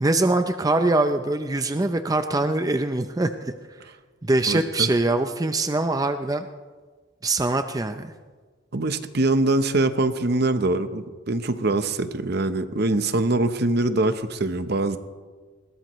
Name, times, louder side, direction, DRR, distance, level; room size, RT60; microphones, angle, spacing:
voice 1, 0.0-3.5 4.2-6.5 7.2-8.1, right 2 dB, 20° right, 8 dB, 0.5 m, -23 dB
voice 2, 4.5-4.9 8.7-15.0, right 2 dB, 55° right, 10 dB, 0.9 m, -23 dB
21.0 x 17.5 x 3.1 m, 1.4 s
head